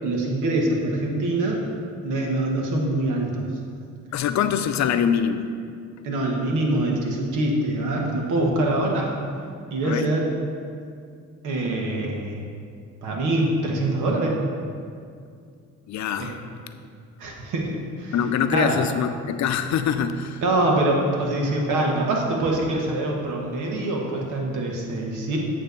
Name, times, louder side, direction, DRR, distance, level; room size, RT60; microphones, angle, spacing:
voice 1, 0.0-1.7 2.0-3.5 6.0-9.2 9.7-10.3 11.4-12.4 13.0-14.4 16.2-16.3 17.2-18.2 18.5-18.8 20.4-25.4, right 2 dB, 90° right, -1 dB, 1.4 m, -24 dB
voice 2, 4.1-5.5 9.8-10.1 15.9-16.5 18.1-20.4, left 8 dB, 65° left, 9 dB, 0.6 m, -24 dB
8.8 x 3.4 x 6.7 m, 2.3 s
cardioid pair, 90°, 30 cm